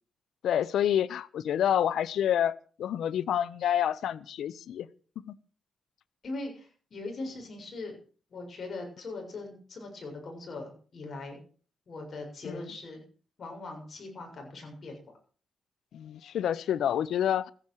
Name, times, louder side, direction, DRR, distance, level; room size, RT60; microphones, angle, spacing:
voice 1, 0.4-4.9 5.2-5.4 12.4-12.7 15.9-17.5, left 10 dB, 80° left, 20 dB, 0.7 m, -28 dB
voice 2, 6.2-8.0 8.3-11.4 11.9-13.0 13.4-15.1, left 2 dB, 55° left, 2 dB, 7.0 m, -40 dB
15.0 x 10.0 x 6.4 m, 0.40 s
cardioid pair, 65°, 0 cm